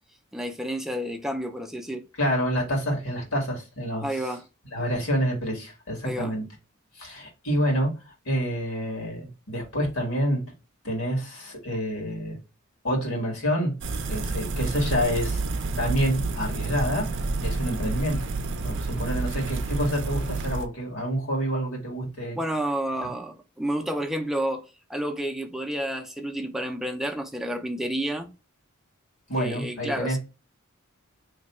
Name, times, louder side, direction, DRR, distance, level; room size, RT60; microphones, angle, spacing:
voice 1, 0.3-2.1 4.0-4.4 6.0-6.3 22.4-28.3 29.4-30.2, right 1 dB, ahead, 0.4 m, -30 dB
voice 2, 2.2-4.1 4.7-6.4 6.9-7.9 8.2-10.4 10.8-12.4 12.8-13.7 14.0-15.4 15.8-17.1 17.4-18.2 18.6-22.4 29.3-30.2, equal, 85° left, 1.8 m, -27 dB
sound 1, 13.8-20.7, right 3 dB, 60° right, 0.5 m, -29 dB
3.2 x 2.2 x 4.1 m
head